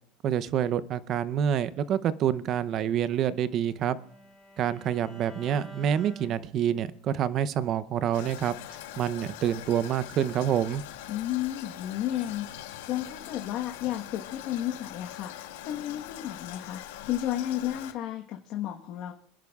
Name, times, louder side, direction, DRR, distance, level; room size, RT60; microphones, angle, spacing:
voice 1, 0.2-4.0 4.6-8.5 9.0-10.8, right 9 dB, 40° right, 15 dB, 0.6 m, -27 dB
Bowed string instrument, 2.8-7.0, equal, 10° right, 4.6 m, -50 dB
Toilet flush, 8.1-17.9, left 13 dB, 80° left, 1.3 m, -43 dB
voice 2, 11.1-15.3 15.6-19.1, left 12 dB, 50° left, 1 dB, 1.2 m, -33 dB
25.5 x 10.5 x 2.4 m, 0.64 s
supercardioid pair, 135°, 0 cm